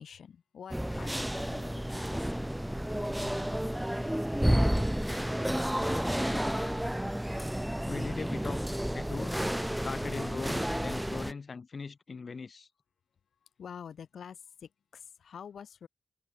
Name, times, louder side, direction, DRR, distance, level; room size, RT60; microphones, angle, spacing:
voice 1, 0.0-2.3 3.2-3.4 13.6-15.9, left 7 dB, 80° left, 6.6 m, -47 dB
sound 1, 0.7-11.3, equal, 5° right, 2.0 m, -31 dB
voice 2, 7.9-8.6 8.9-9.4 9.8-12.7, left 5 dB, 55° left, 5.4 m, -40 dB
cardioid pair, 60°, 0 cm